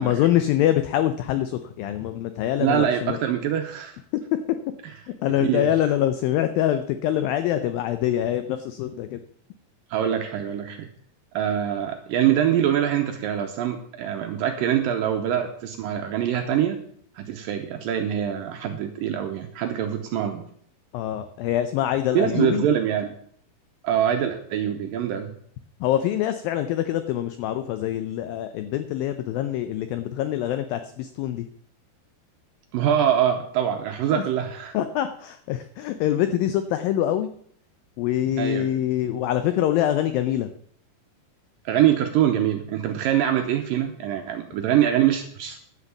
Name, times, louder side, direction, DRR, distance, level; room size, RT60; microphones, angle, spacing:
voice 1, 0.0-3.2 5.2-9.2 20.9-22.7 25.8-31.5 34.1-34.3 34.7-37.3 38.0-40.5, left 12 dB, 90° left, 10 dB, 2.0 m, -24 dB
voice 2, 2.6-4.0 5.4-5.7 9.9-10.9 11.3-16.8 17.2-20.4 22.1-23.1 23.8-25.3 32.7-34.8 38.4-38.7 41.7-45.6, right 10 dB, 75° right, 5 dB, 2.1 m, -24 dB
10.5 x 8.3 x 7.0 m, 0.62 s
omnidirectional pair, 4.9 m